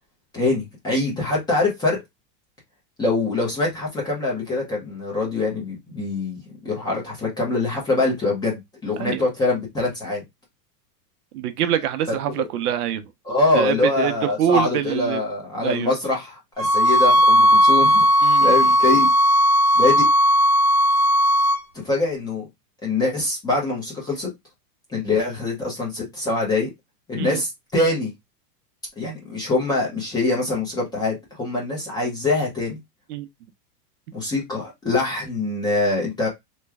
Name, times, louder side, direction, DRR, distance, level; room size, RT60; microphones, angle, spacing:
voice 1, 0.3-2.0 3.0-10.2 12.4-12.5 13.3-18.0 18.4-19.1 19.8-20.1 21.7-22.4 22.8-24.3 24.9-26.7 27.1-28.1 29.0-32.8 34.1-36.3, left 2 dB, 10° left, 0.6 m, -24 dB
voice 2, 11.3-13.1 13.5-15.2 15.6-15.9 18.2-18.8 27.1-27.4 33.1-33.3, right 10 dB, 65° right, 0.7 m, -25 dB
sound 1, 16.6-21.6, equal, 30° right, 0.7 m, -16 dB
3.1 x 2.2 x 3.4 m
supercardioid pair, 155°, 49 cm